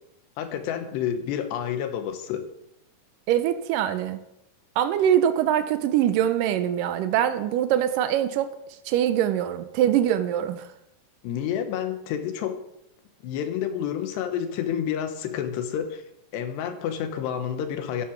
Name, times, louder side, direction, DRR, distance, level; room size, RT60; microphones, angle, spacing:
voice 1, 0.4-2.5 11.2-12.6 13.2-16.0 16.3-18.1, left 9 dB, 85° left, 8 dB, 3.3 m, -29 dB
voice 2, 3.3-4.2 4.8-8.6 8.9-10.7, right 10 dB, 85° right, 10 dB, 1.9 m, -23 dB
13.5 x 10.5 x 4.6 m, 0.82 s
omnidirectional pair, 4.8 m